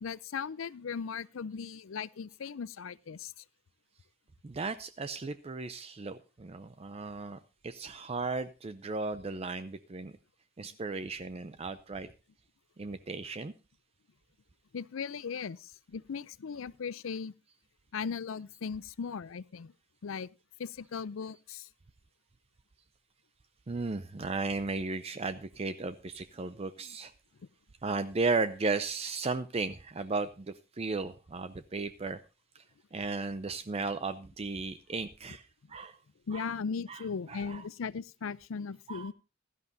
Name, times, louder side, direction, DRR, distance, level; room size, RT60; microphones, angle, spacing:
voice 1, 0.0-3.4 14.7-17.3 17.9-19.7 20.0-20.3 20.6-21.7 36.3-39.1, left 6 dB, 85° left, 0.5 m, -38 dB
voice 2, 4.4-10.1 10.6-12.1 12.8-13.5 23.7-27.1 27.8-32.2 32.5-32.6 32.9-36.0 36.3-36.5 36.9-37.6 38.9-39.1, right 3 dB, 30° right, 0.5 m, -35 dB
16.0 x 12.5 x 2.7 m
head